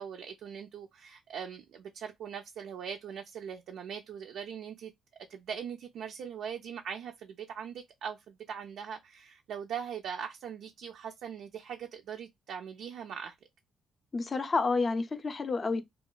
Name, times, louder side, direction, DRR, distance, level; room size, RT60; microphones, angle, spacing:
voice 1, 0.0-4.9 5.3-13.3, right 7 dB, 75° right, 0.3 m, -41 dB
voice 2, 14.1-15.8, left 4 dB, 35° left, 0.4 m, -29 dB
2.9 x 2.2 x 2.3 m
cardioid pair, 90°, 0 cm